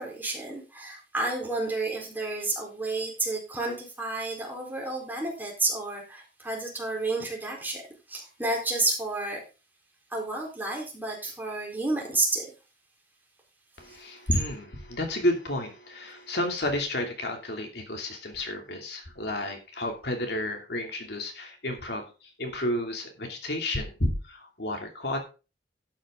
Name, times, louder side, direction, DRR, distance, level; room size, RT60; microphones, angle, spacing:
voice 1, 0.0-7.8 8.1-9.4 10.1-12.5 13.9-14.0, right 2 dB, 10° right, -1 dB, 4.1 m, -31 dB
voice 2, 13.8-25.2, left 1 dB, 65° left, 3 dB, 2.8 m, -31 dB
12.0 x 9.0 x 3.8 m, 0.32 s
head